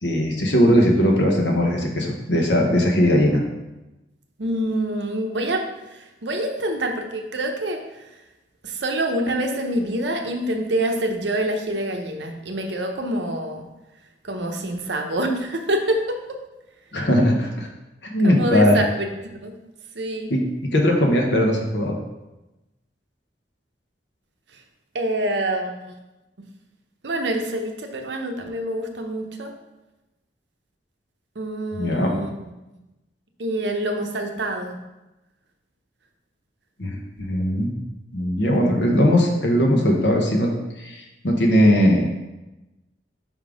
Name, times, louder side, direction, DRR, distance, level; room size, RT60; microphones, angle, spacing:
voice 1, 0.0-3.4 16.9-17.7 18.1-18.8 20.3-22.0 31.8-32.1 36.8-37.7 38.1-40.5 40.8-42.2, equal, 75° left, 1 dB, 1.1 m, -19 dB
voice 2, 4.4-5.6 5.9-7.8 8.6-13.7 14.2-16.4 18.2-19.5 19.9-20.3 24.9-25.9 27.0-29.5 31.4-32.5 33.4-34.7, right 1 dB, 75° right, 3 dB, 0.8 m, -26 dB
5.3 x 3.7 x 5.0 m, 1.0 s
head